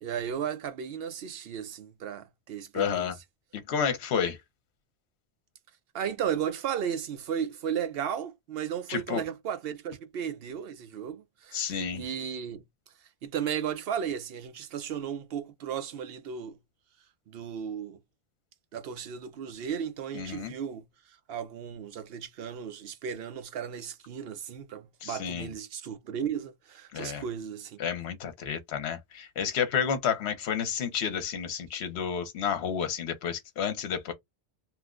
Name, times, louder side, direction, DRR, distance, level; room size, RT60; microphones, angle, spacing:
voice 1, 0.0-3.1 5.9-12.6 13.2-16.6 17.3-18.0 18.7-20.8 21.3-27.8, right 8 dB, 65° right, 0.7 m, -35 dB
voice 2, 2.7-3.1 3.5-4.4 8.9-9.2 11.5-12.0 20.1-20.5 25.0-25.5 26.9-27.2 27.8-34.1, left 7 dB, 75° left, 1.0 m, -30 dB
2.9 x 2.1 x 3.6 m
omnidirectional pair, 1.1 m